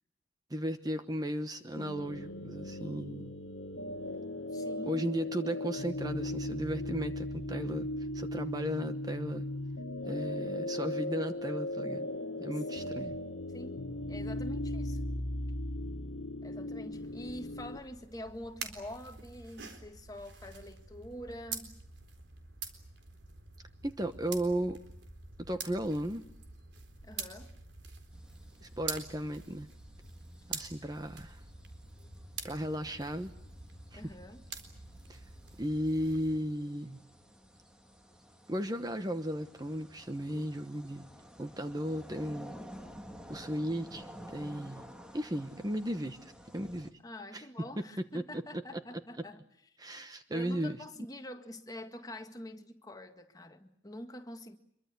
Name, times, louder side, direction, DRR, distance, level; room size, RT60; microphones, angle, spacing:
voice 1, 0.5-3.3 4.9-9.5 10.1-12.1 12.4-13.2 23.8-24.8 25.5-26.2 28.6-29.7 30.5-31.4 32.4-33.3 33.9-34.1 35.1-35.2 35.6-37.0 38.5-41.1 41.4-42.6 43.3-44.1 44.3-44.9 45.1-46.9 47.3-47.7 48.1-48.4 48.7-48.8 49.8-50.8, equal, 20° right, 1.0 m, -35 dB
sound 1, 1.8-17.8, left 1 dB, 85° left, 1.6 m, -37 dB
voice 2, 4.5-5.1 12.5-13.2 13.5-13.8 14.1-15.1 16.4-21.7 27.0-27.5 33.9-34.4 47.0-49.4 50.3-54.6, left 1 dB, 20° left, 1.8 m, -46 dB
sound 2, 16.9-36.4, right 5 dB, 60° right, 4.0 m, -46 dB
sound 3, 28.1-46.9, equal, 5° right, 1.9 m, -53 dB
25.5 x 23.5 x 8.3 m
head